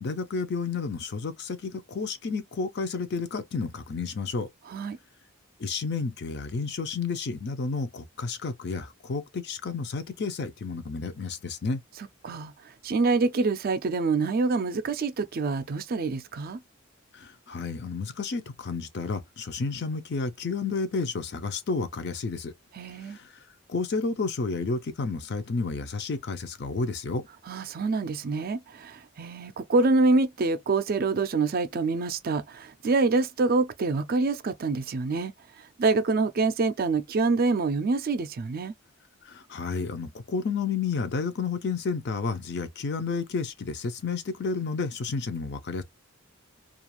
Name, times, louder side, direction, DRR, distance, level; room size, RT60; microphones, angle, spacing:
voice 1, 0.0-4.5 5.6-11.8 17.1-22.5 23.1-23.3 23.7-27.2 39.3-45.8, left 4 dB, 50° left, 0.5 m, -31 dB
voice 2, 12.8-16.6 22.7-23.2 27.5-35.3 35.8-38.7, right 3 dB, 45° right, 0.4 m, -26 dB
2.4 x 2.3 x 2.9 m
head